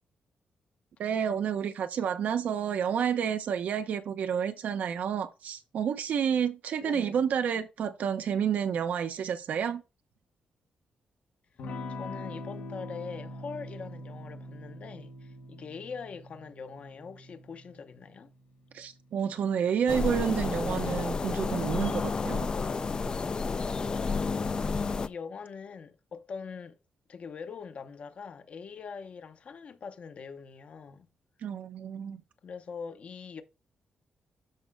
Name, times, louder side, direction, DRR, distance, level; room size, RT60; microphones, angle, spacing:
voice 1, 1.0-9.8 18.7-22.5 31.4-32.2, right 8 dB, 70° right, 0.9 m, -30 dB
voice 2, 6.8-7.2 11.9-18.3 23.8-26.8 27.1-31.1 32.4-33.4, left 5 dB, 50° left, 0.8 m, -43 dB
Electric guitar / Strum, 11.6-19.9, left 1 dB, 80° left, 1.3 m, -43 dB
sound 1, 19.9-25.1, left 4 dB, 30° left, 0.4 m, -30 dB
13.0 x 5.1 x 2.2 m
cardioid pair, 130°, 3 cm